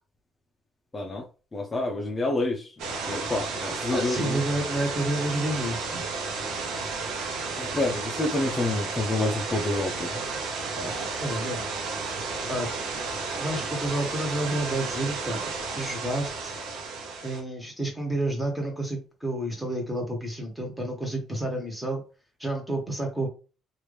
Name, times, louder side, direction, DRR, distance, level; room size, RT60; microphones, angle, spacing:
voice 1, 0.9-1.2 1.5-2.7 3.1-4.4 7.6-10.1 10.8-10.9, left 2 dB, 25° left, 0.7 m, -28 dB
sound 1, 2.8-17.4, right 4 dB, 85° right, 0.8 m, -32 dB
voice 2, 3.9-6.0 11.2-11.6 12.5-12.7 13.4-15.4 15.7-16.5 17.2-22.0 22.4-23.3, right 1 dB, 5° right, 1.4 m, -30 dB
3.1 x 2.6 x 3.3 m
cardioid pair, 105°, 0 cm